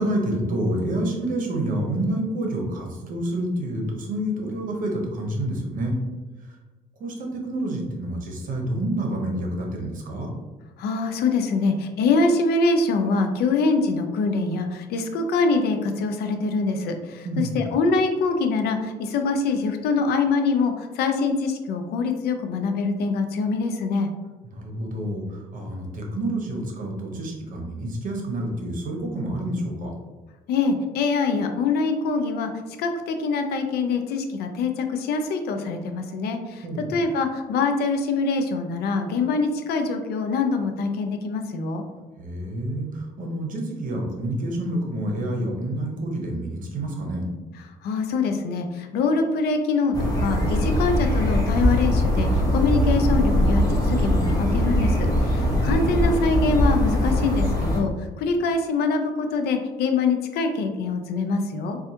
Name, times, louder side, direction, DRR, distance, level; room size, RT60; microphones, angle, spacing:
voice 1, 0.0-5.9 6.4-6.6 7.0-10.3 17.2-17.6 24.4-29.9 36.6-37.0 42.2-47.3 55.4-55.7, right 1 dB, 50° right, 1 dB, 0.9 m, -28 dB
voice 2, 10.8-24.1 30.5-32.5 32.8-36.6 36.9-41.8 47.8-61.8, left 4 dB, 70° left, 6 dB, 0.5 m, -24 dB
sound 1, 49.9-57.8, equal, 20° left, 1.0 m, -21 dB
4.2 x 2.3 x 2.8 m, 1.2 s
cardioid pair, 110°, 17 cm